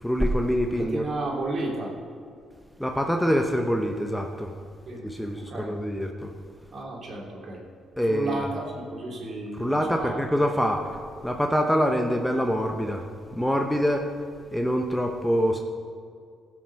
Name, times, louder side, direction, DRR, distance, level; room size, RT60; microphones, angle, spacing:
voice 1, 0.0-1.0 2.8-4.5 5.0-6.3 8.0-8.4 9.5-10.9 11.2-13.1 13.3-14.1 14.5-15.6, equal, 5° left, 3 dB, 0.9 m, -25 dB
voice 2, 0.8-1.9 4.9-5.0 5.4-5.7 6.7-7.6 8.1-10.1, right 2 dB, 50° right, -2 dB, 2.8 m, -33 dB
16.5 x 6.2 x 5.7 m, 2.2 s
cardioid pair, 90°, 0 cm